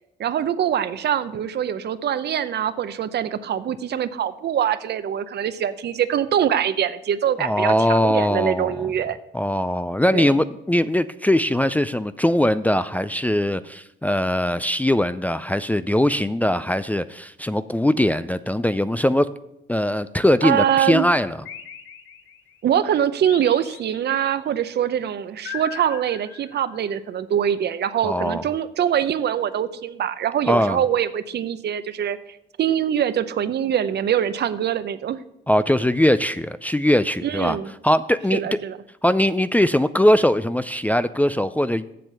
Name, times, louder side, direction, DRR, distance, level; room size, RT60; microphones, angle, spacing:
voice 1, 0.2-9.2 10.1-10.3 20.4-21.1 22.6-32.2 32.6-35.2 37.2-37.7 38.3-38.8, right 9 dB, 60° right, 13 dB, 0.7 m, -23 dB
voice 2, 7.4-8.8 9.3-19.3 19.7-21.4 28.0-28.4 30.5-30.8 35.5-37.6 37.8-38.6 39.0-41.8, left 1 dB, 10° left, 12 dB, 0.3 m, -21 dB
sound 1, 21.5-22.6 23.3-24.4 25.5-26.9, left 7 dB, 85° left, 1.0 m, -39 dB
7.7 x 7.3 x 6.6 m, 0.82 s
cardioid pair, 90°, 20 cm